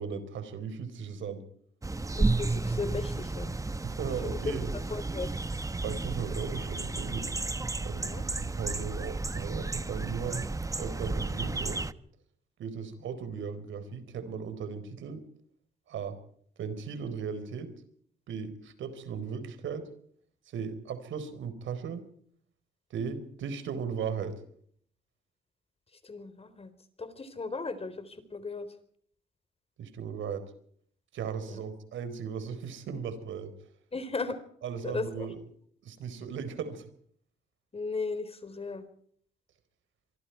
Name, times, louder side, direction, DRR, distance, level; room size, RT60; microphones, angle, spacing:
voice 1, 0.0-1.4 3.8-4.7 5.8-7.3 7.8-10.5 10.8-11.8 12.6-15.2 15.9-16.2 16.6-17.7 18.3-19.9 20.5-22.0 22.9-24.4 29.8-30.5 31.1-33.5 34.6-35.4 35.8-36.8, right 6 dB, 75° right, 11 dB, 4.3 m, -37 dB
sound 1, 1.8-11.9, right 3 dB, 15° right, 1.1 m, -32 dB
voice 2, 2.2-3.5 4.2-4.5 4.9-5.3 7.9-8.2 13.0-13.1 26.0-26.7 27.0-28.7 31.5-31.6 33.9-34.4 34.8-35.3 37.7-38.8, left 4 dB, 30° left, 11 dB, 4.2 m, -36 dB
25.5 x 24.0 x 4.7 m, 0.62 s
cardioid pair, 90°, 20 cm